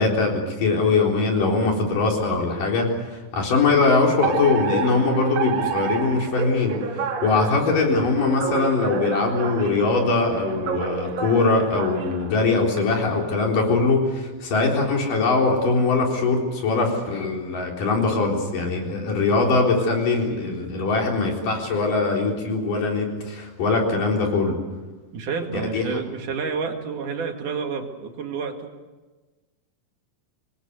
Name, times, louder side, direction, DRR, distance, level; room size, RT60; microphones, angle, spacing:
voice 1, 0.0-24.6 25.7-25.8, left 3 dB, 70° left, 0 dB, 5.5 m, -22 dB
Alarm, 4.2-12.8, right 6 dB, 80° right, 3.6 m, -30 dB
voice 2, 25.1-28.7, right 5 dB, 65° right, 4 dB, 3.6 m, -29 dB
25.5 x 21.0 x 8.1 m, 1.2 s
omnidirectional pair, 4.0 m